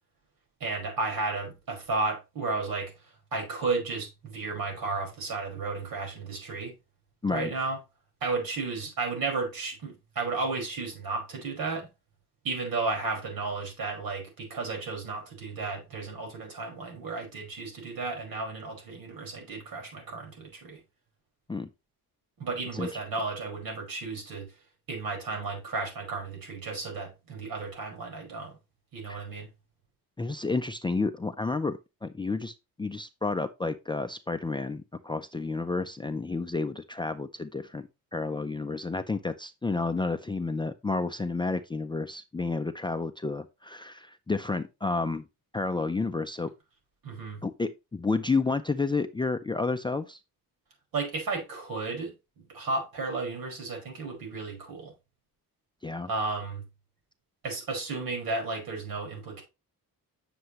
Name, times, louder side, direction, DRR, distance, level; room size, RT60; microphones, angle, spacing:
voice 1, 0.6-6.7 7.3-7.8 8.2-11.9 12.4-20.8 22.4-24.5 24.9-28.6 28.9-29.5 47.0-47.4 50.9-54.9 56.1-56.6 57.4-59.4, right 3 dB, 70° right, 5.3 m, -33 dB
voice 2, 30.2-45.2 45.5-46.5 47.4-50.2 55.8-56.1, left 3 dB, 15° left, 0.5 m, -31 dB
9.5 x 6.9 x 3.1 m
cardioid pair, 140°, 37 cm